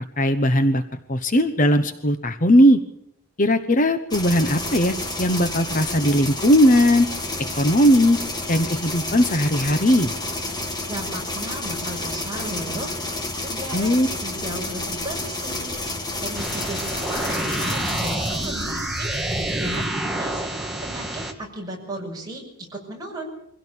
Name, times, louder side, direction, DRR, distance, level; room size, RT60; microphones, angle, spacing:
voice 1, 0.2-2.8 3.4-7.1 7.6-8.2 8.5-10.1 13.7-14.1, equal, 35° left, 9 dB, 1.0 m, -18 dB
sound 1, 4.1-19.9, left 2 dB, 20° left, 2.3 m, -30 dB
voice 2, 10.9-12.9 13.4-15.8 16.2-19.9 20.2-23.3, right 1 dB, 20° right, -1 dB, 6.1 m, -35 dB
sound 2, 16.4-21.3, right 1 dB, ahead, 1.9 m, -28 dB
23.5 x 17.0 x 8.5 m, 0.74 s
head